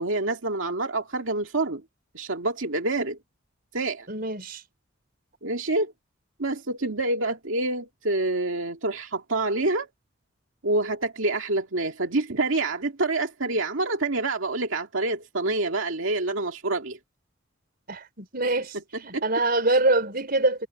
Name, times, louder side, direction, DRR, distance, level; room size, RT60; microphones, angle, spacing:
voice 1, 0.0-1.8 2.1-3.2 3.7-4.1 5.4-5.9 6.4-9.9 10.6-17.0 19.1-19.2, right 2 dB, 85° right, 2.1 m, -27 dB
voice 2, 4.1-4.6 17.9-18.8 19.0-20.7, right 2 dB, 50° right, 4.9 m, -24 dB
head